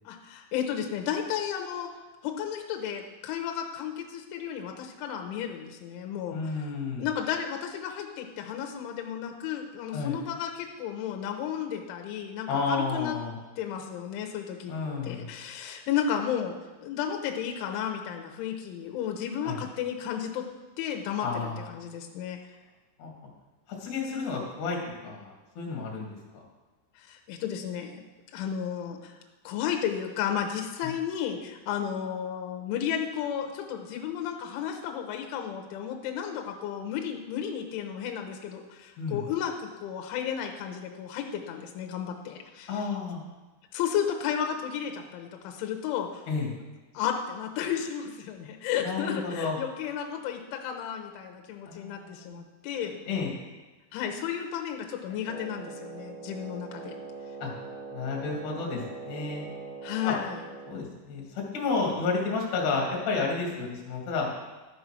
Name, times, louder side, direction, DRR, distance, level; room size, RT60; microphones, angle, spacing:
voice 1, 0.1-1.9 2.2-6.7 7.0-13.2 13.6-14.7 15.0-16.6 16.8-20.4 20.8-21.3 21.7-22.4 27.0-28.0 28.3-29.2 29.4-42.8 43.7-46.2 46.9-53.0 53.9-56.9 59.8-60.4, left 9 dB, 75° left, 3 dB, 3.2 m, -33 dB
voice 2, 6.3-7.1 9.9-10.2 12.5-13.4 14.7-15.3 19.4-19.6 21.2-21.7 23.0-23.1 23.8-26.1 39.0-39.2 42.7-43.2 46.3-46.5 48.8-49.6 51.7-52.4 53.1-53.3 57.4-57.5 57.9-59.5 60.0-60.2 60.7-64.3, left 4 dB, 50° left, -2 dB, 2.9 m, -31 dB
Wind instrument woodwind instrument, 55.2-60.9, right 3 dB, 70° right, 1.5 m, -42 dB
13.0 x 5.5 x 6.1 m, 1.2 s
omnidirectional pair, 5.9 m